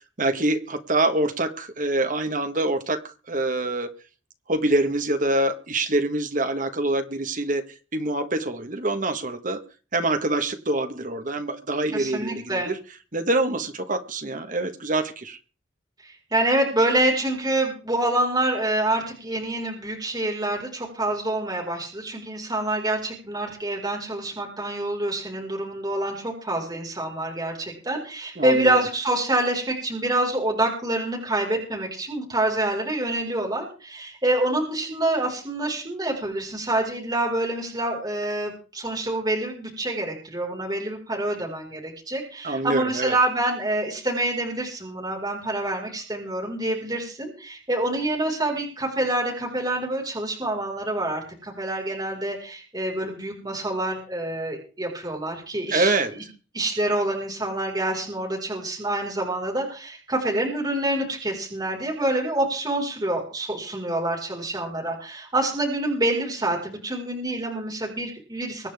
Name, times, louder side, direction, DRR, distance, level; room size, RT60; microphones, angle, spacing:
voice 1, 0.2-3.9 4.5-7.6 7.9-9.6 9.9-12.8 13.1-15.4 28.4-28.8 42.4-43.1 55.7-56.1, right 2 dB, 45° right, 1.5 m, -25 dB
voice 2, 11.9-12.7 16.0-55.9 56.5-68.7, right 1 dB, 20° right, 5.0 m, -26 dB
24.0 x 10.0 x 3.6 m
head